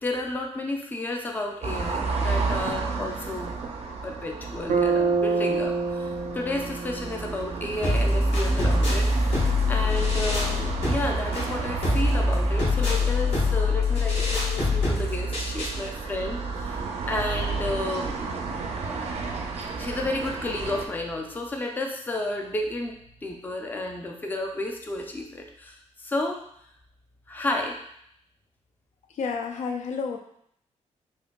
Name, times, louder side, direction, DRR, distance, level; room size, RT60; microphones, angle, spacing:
voice 1, 0.0-3.5 4.0-18.2 19.8-26.4 27.3-27.8, left 2 dB, 15° left, 2 dB, 0.4 m, -32 dB
sound 1, 1.6-20.9, right 4 dB, 60° right, 0.5 m, -33 dB
Bass guitar, 4.7-8.8, right 4 dB, 90° right, 0.8 m, -28 dB
sound 2, 7.8-15.8, left 2 dB, 55° left, 1.4 m, -24 dB
voice 2, 29.1-30.2, left 5 dB, 75° left, 3 dB, 0.4 m, -31 dB
4.7 x 2.6 x 2.2 m, 0.70 s
wide cardioid pair, 150°, 12 cm